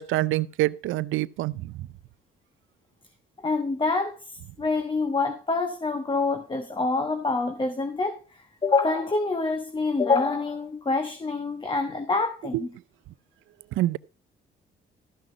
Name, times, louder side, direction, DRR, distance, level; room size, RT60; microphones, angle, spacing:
voice 1, 0.0-1.7 12.5-12.6 13.7-14.0, right 16 dB, 85° right, 0.5 m, -26 dB
voice 2, 3.4-12.7, left 3 dB, 25° left, 1.2 m, -26 dB
13.5 x 6.1 x 4.9 m
cardioid pair, 90°, 20 cm